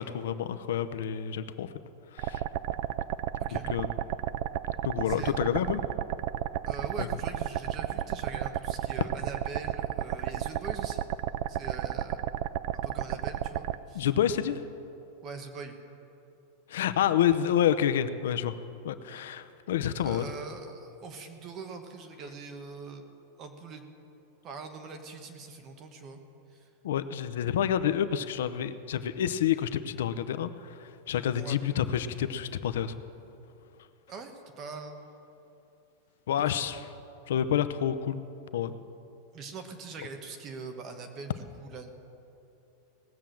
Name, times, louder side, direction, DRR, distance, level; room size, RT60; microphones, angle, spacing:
voice 1, 0.0-1.7 2.1-2.4 3.5-3.9 4.8-5.8 7.0-7.1 13.9-14.6 16.7-18.5 18.8-20.2 26.8-32.9 36.3-36.9 37.3-38.2 38.5-38.7, left 10 dB, 75° left, 11 dB, 0.6 m, -28 dB
sound 1, 2.2-13.8, right 12 dB, 45° right, 0.3 m, -32 dB
voice 2, 5.0-5.3 6.6-11.1 11.5-12.2 12.8-14.1 15.2-15.8 19.1-19.3 19.9-23.1 23.4-23.8 24.4-26.2 26.5-26.7 31.3-31.6 34.1-35.1 36.4-36.6 39.3-41.9, right 4 dB, 25° right, 6 dB, 1.1 m, -42 dB
18.5 x 7.2 x 7.6 m, 2.8 s
supercardioid pair, 180°, 0 cm